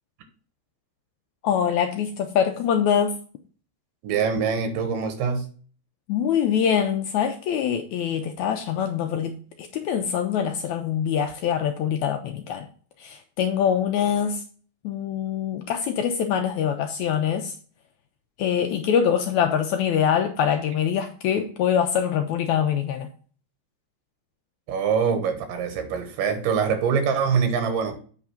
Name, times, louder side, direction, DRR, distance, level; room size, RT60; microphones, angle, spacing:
voice 1, 1.4-3.1 6.1-9.4 9.7-12.7 13.0-14.4 14.8-17.5 18.4-23.1, left 8 dB, 80° left, 6 dB, 1.7 m, -24 dB
voice 2, 4.0-5.5 24.7-28.0, right 6 dB, 90° right, 7 dB, 2.9 m, -24 dB
7.9 x 3.6 x 5.7 m, 0.43 s
omnidirectional pair, 3.8 m